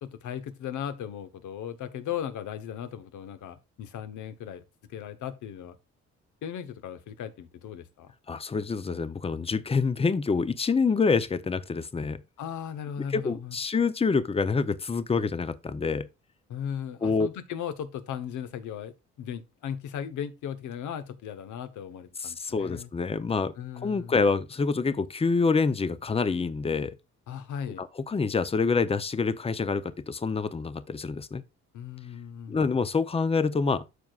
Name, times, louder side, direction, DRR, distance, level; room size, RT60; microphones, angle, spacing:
voice 1, 0.0-4.6 4.9-5.7 6.4-8.1 12.4-13.6 16.5-22.9 23.6-24.2 27.3-27.8 31.7-32.6, left 9 dB, 80° left, 1.1 m, -37 dB
voice 2, 8.3-12.2 13.1-16.1 17.0-17.3 22.2-23.5 23.8-26.9 27.8-31.4 32.5-33.8, left 4 dB, 20° left, 0.7 m, -26 dB
13.0 x 4.6 x 2.4 m
cardioid pair, 90°, 30 cm